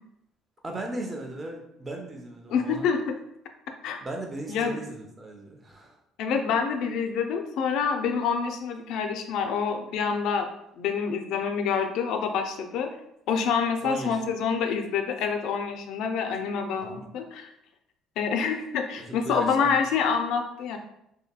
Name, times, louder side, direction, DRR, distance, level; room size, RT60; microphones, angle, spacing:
voice 1, 0.6-2.9 4.0-6.0 13.8-14.2 16.8-17.1 19.0-19.8, right 1 dB, 25° right, 1 dB, 0.6 m, -36 dB
voice 2, 2.5-3.2 3.8-4.0 4.5-4.8 6.2-10.5 10.8-12.9 13.3-17.5 18.2-20.8, left 6 dB, 70° left, 5 dB, 0.4 m, -27 dB
2.7 x 2.6 x 2.2 m, 0.80 s
supercardioid pair, 95°, 0 cm